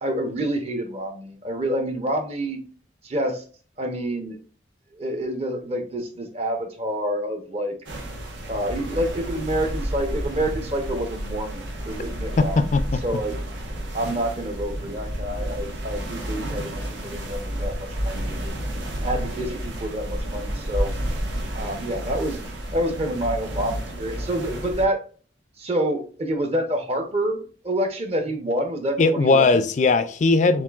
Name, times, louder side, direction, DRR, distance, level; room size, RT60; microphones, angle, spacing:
voice 1, 0.0-2.6 3.0-3.4 3.8-4.4 4.9-7.7 8.5-12.7 13.0-13.4 13.9-18.6 19.0-20.9 21.5-22.4 22.7-25.0 25.6-29.6, right 1 dB, 35° right, 0.8 m, -28 dB
sound 1, 7.9-24.9, equal, 85° right, 1.2 m, -31 dB
voice 2, 12.4-13.0 29.0-30.6, left 3 dB, 40° left, 0.3 m, -19 dB
7.2 x 2.5 x 2.4 m
head